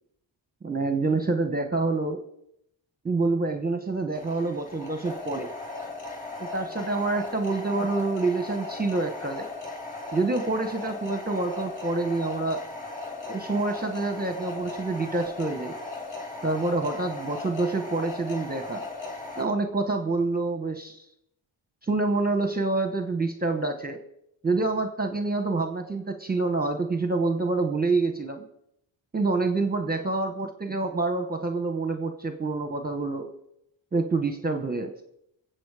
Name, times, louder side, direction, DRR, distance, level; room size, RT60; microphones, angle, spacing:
voice 1, 0.6-2.2 3.0-5.5 6.4-9.5 10.1-12.6 13.2-15.7 16.4-18.9 19.4-21.1 21.8-24.0 24.4-28.4 29.1-33.3 33.9-34.9, right 3 dB, 20° right, 7 dB, 1.0 m, -27 dB
sound 1, 4.1-19.4, left 3 dB, 15° left, 3.9 m, -37 dB
21.0 x 7.9 x 4.9 m, 0.77 s
cardioid pair, 90°, 48 cm